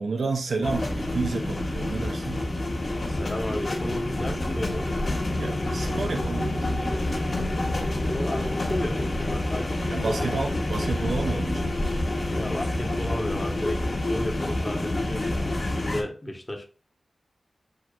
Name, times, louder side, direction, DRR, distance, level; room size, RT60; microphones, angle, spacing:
voice 1, 0.0-2.4 5.4-6.9 9.9-11.8, right 4 dB, 80° right, 0.6 m, -30 dB
sound 1, 0.6-16.0, left 1 dB, 60° left, 1.8 m, -28 dB
voice 2, 3.1-4.9 8.1-9.7 10.1-10.6 12.3-16.6, left 1 dB, 25° left, 1.3 m, -33 dB
6.6 x 2.8 x 2.5 m
cardioid pair, 40°, 0 cm